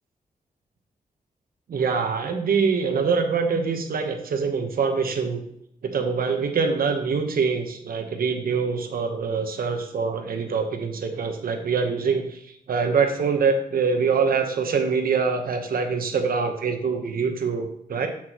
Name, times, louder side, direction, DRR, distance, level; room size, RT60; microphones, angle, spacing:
voice 1, 1.7-5.4 5.8-12.4 12.7-18.1, right 5 dB, 75° right, 5 dB, 1.0 m, -24 dB
7.9 x 5.9 x 3.0 m, 0.72 s
wide cardioid pair, 150°, 15 cm